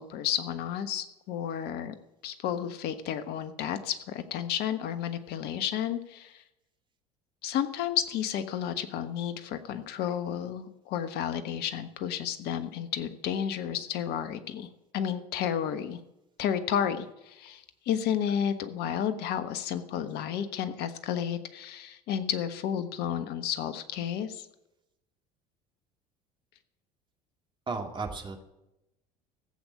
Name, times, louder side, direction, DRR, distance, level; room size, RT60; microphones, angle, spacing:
voice 1, 0.0-1.9 2.2-6.4 7.4-16.0 16.4-24.5, left 9 dB, 55° left, 11 dB, 1.3 m, -32 dB
voice 2, 27.7-28.4, right 4 dB, 25° right, 3 dB, 2.6 m, -34 dB
15.0 x 8.1 x 8.4 m, 0.89 s
hypercardioid pair, 65°, 20 cm